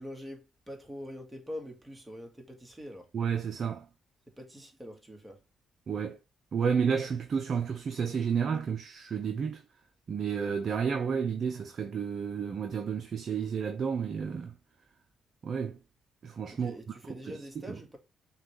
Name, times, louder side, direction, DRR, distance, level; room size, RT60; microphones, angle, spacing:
voice 1, 0.0-3.1 4.3-5.4 16.5-18.0, equal, 10° right, 1.4 m, -44 dB
voice 2, 3.1-3.9 5.9-6.2 6.5-9.6 10.1-14.6 15.4-15.8 16.2-16.7 17.3-17.8, right 6 dB, 50° right, 0.6 m, -31 dB
5.7 x 2.4 x 3.0 m
cardioid pair, 90°, 0 cm